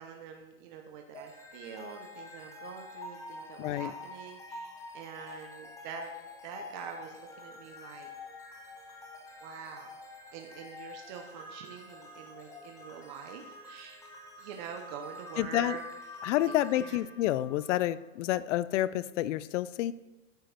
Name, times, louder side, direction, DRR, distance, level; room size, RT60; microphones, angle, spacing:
voice 1, 0.0-6.1 6.4-8.1 9.4-10.0 10.3-14.0 14.4-15.8 16.1-17.0, right 7 dB, 40° right, 3 dB, 0.8 m, -45 dB
sound 1, 1.1-18.3, left 2 dB, 10° left, 0.7 m, -47 dB
voice 2, 3.6-3.9 15.4-15.8 16.2-19.9, left 14 dB, 85° left, 17 dB, 0.5 m, -29 dB
9.1 x 5.2 x 5.8 m, 1.1 s
supercardioid pair, 175°, 36 cm